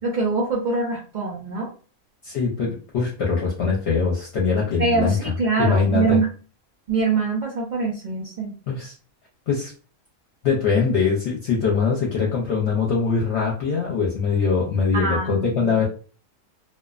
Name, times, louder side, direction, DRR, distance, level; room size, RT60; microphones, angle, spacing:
voice 1, 0.0-1.7 4.8-6.3 6.9-8.6 14.9-15.8, right 4 dB, 70° right, -2 dB, 0.4 m, -24 dB
voice 2, 2.2-5.3 5.6-6.2 8.7-8.9 9.5-9.7 10.4-15.8, left 5 dB, 65° left, -2 dB, 0.8 m, -22 dB
2.5 x 2.1 x 2.3 m, 0.38 s
omnidirectional pair, 1.5 m